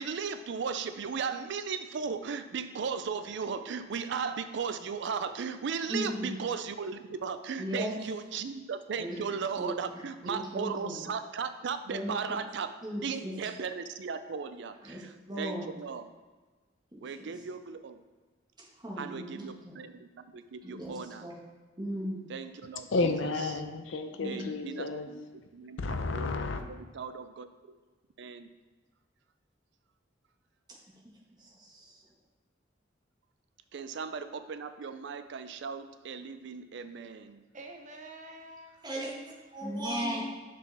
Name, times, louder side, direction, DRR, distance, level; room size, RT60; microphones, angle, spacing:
voice 1, 0.0-12.7 13.0-16.1 17.0-18.0 19.0-21.3 22.3-23.3 24.2-25.2 25.5-26.3 26.6-27.5 28.2-28.5 33.7-37.4, right 6 dB, 65° right, 10 dB, 0.4 m, -36 dB
voice 2, 5.9-6.3 7.6-7.9 9.0-9.2 9.6-11.0 11.9-12.1 12.8-13.3 14.8-15.0 15.3-15.7 16.9-17.0 18.8-19.7 20.6-20.9 21.2-21.3 21.8-22.2 24.2-24.4 31.4-31.7 38.8-40.2, equal, 25° right, -4 dB, 1.3 m, -36 dB
voice 3, 22.9-25.1 25.8-26.6, left 3 dB, 80° left, 7 dB, 0.6 m, -31 dB
voice 4, 37.5-38.9 39.5-40.1, right 2 dB, 40° right, 2 dB, 0.8 m, -49 dB
6.5 x 5.1 x 3.3 m, 1.3 s
head